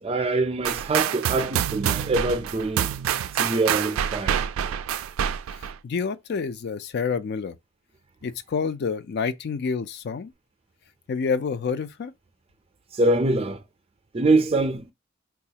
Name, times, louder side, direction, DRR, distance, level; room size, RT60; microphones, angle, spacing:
voice 1, 0.0-2.9 3.3-4.4 12.9-13.6 14.1-14.9, right 2 dB, 30° right, 0.5 m, -24 dB
sound 1, 0.6-5.8, right 9 dB, 85° right, 0.3 m, -27 dB
voice 2, 5.8-7.6 8.2-10.3 11.1-12.1, left 5 dB, 55° left, 0.4 m, -28 dB
4.0 x 2.3 x 2.8 m
head